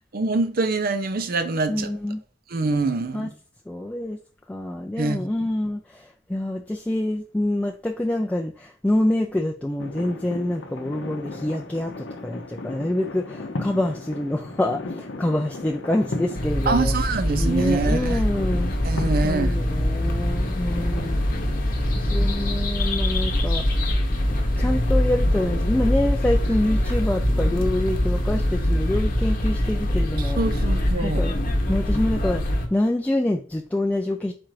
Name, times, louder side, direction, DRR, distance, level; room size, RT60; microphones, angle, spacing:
voice 1, 0.1-1.9 2.5-3.3 5.0-5.2 16.7-18.2 18.8-19.6 30.2-31.2, right 3 dB, 55° right, 0.5 m, -24 dB
voice 2, 1.7-2.2 3.1-3.3 3.7-4.2 4.5-16.9 17.4-18.7 19.2-21.2 21.9-23.8 24.3-30.4 31.0-31.3 31.7-34.3, left 1 dB, 10° left, 0.3 m, -26 dB
sound 1, 9.8-22.6, left 2 dB, 80° left, 0.7 m, -36 dB
sound 2, 16.3-32.7, left 1 dB, 50° left, 0.9 m, -23 dB
4.3 x 2.5 x 4.7 m
head